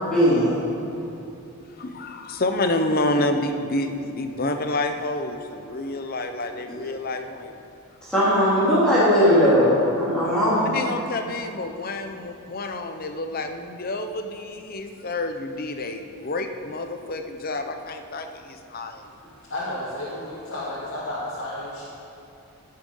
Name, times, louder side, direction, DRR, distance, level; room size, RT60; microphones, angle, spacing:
voice 1, 0.1-0.5 8.0-10.7, equal, 5° left, -11 dB, 3.0 m, -18 dB
voice 2, 1.7-7.6 10.7-19.1, left 2 dB, 40° left, 6 dB, 0.8 m, -28 dB
voice 3, 19.5-21.9, left 1 dB, 60° left, -9 dB, 2.4 m, -32 dB
15.5 x 6.7 x 5.5 m, 2.9 s
head